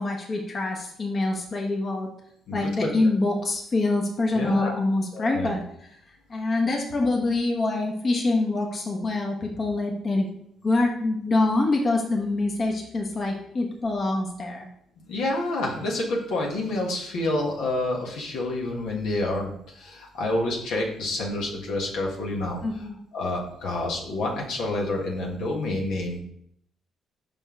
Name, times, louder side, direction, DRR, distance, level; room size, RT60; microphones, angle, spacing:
voice 1, 0.0-2.1 2.5-5.6 6.3-10.3 10.6-14.7 22.6-23.0, left 2 dB, 45° left, 0 dB, 1.2 m, -25 dB
voice 2, 2.5-2.9 4.3-4.7 5.1-5.5 15.1-22.6 23.1-26.2, left 2 dB, 80° left, -1 dB, 1.4 m, -28 dB
5.5 x 5.3 x 3.7 m, 0.70 s
supercardioid pair, 65°, 0 cm